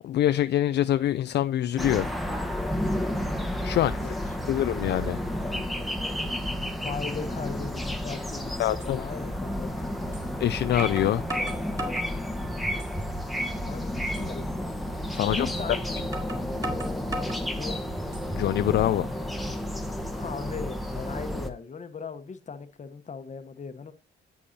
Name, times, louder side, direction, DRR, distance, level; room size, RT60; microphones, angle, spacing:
voice 1, 0.0-2.1 3.6-4.0 4.5-5.2 8.6-9.0 10.4-11.2 15.1-15.5 18.3-19.1, left 12 dB, 60° left, 0.4 m, -24 dB
sound 1, 1.8-21.5, equal, ahead, 1.3 m, -31 dB
voice 2, 3.8-4.6 6.8-10.2 13.6-14.5 15.2-16.8 17.5-17.9 20.1-23.9, left 5 dB, 35° left, 1.1 m, -38 dB
sound 2, 8.2-8.3 8.8-8.9 10.1-10.3 10.8-12.1 12.6-13.2 13.6-13.7 14.1-14.3 15.5-15.6 16.1-17.4 18.0-18.5, right 1 dB, 15° right, 3.3 m, -36 dB
10.0 x 8.5 x 2.8 m
cardioid pair, 90°, 20 cm